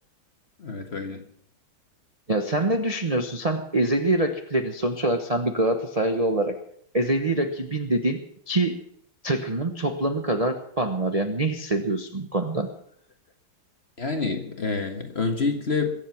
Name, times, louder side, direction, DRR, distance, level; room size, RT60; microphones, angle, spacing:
voice 1, 0.6-1.2 14.0-15.9, left 4 dB, 35° left, 4 dB, 1.5 m, -27 dB
voice 2, 2.3-6.5 6.9-8.2 8.5-8.7 9.2-12.7, right 2 dB, 25° right, 4 dB, 0.8 m, -25 dB
22.5 x 8.0 x 6.0 m, 0.65 s
omnidirectional pair, 2.3 m